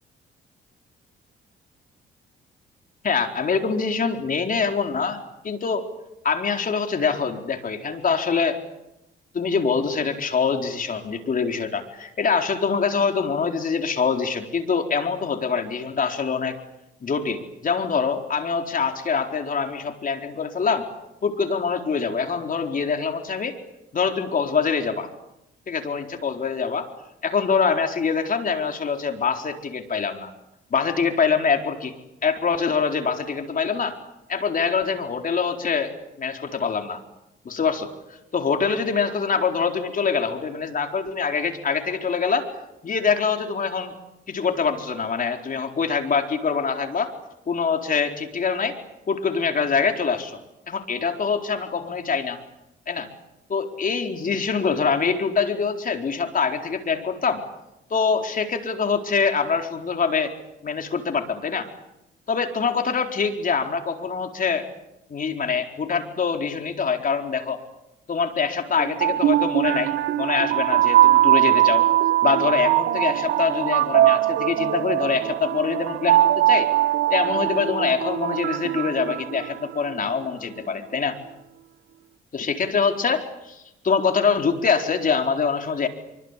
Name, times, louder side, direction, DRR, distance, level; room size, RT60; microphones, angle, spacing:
voice 1, 3.0-5.9 6.2-8.6 9.3-16.6 17.0-20.9 21.2-23.6 23.9-25.1 25.7-26.9 27.2-30.3 30.7-31.9 32.2-34.0 34.3-35.9 36.2-37.0 37.4-37.9 38.3-42.5 42.8-43.9 44.3-47.1 47.5-48.8 49.1-50.4 50.7-52.4 52.9-53.1 53.5-57.4 57.9-60.3 60.6-61.7 62.3-64.6 65.1-67.6 68.1-71.8 72.2-76.7 77.1-81.2 82.3-85.9, left 5 dB, 45° left, 4 dB, 4.3 m, -24 dB
sound 1, 68.8-79.9, right 13 dB, 85° right, 1.0 m, -21 dB
26.0 x 24.5 x 8.3 m, 0.89 s
cardioid pair, 90°, 20 cm